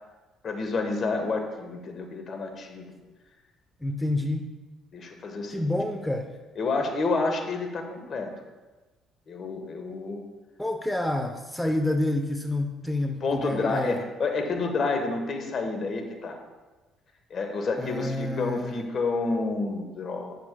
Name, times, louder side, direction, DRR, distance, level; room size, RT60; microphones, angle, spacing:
voice 1, 0.4-2.9 4.9-5.8 6.6-8.3 9.3-10.2 13.2-16.4 17.3-20.4, left 3 dB, 50° left, 4 dB, 1.2 m, -29 dB
voice 2, 3.8-4.5 5.5-6.3 10.6-14.0 17.8-18.8, left 1 dB, 10° left, 5 dB, 0.6 m, -28 dB
9.3 x 7.1 x 2.2 m, 1.2 s
supercardioid pair, 65°, 0 cm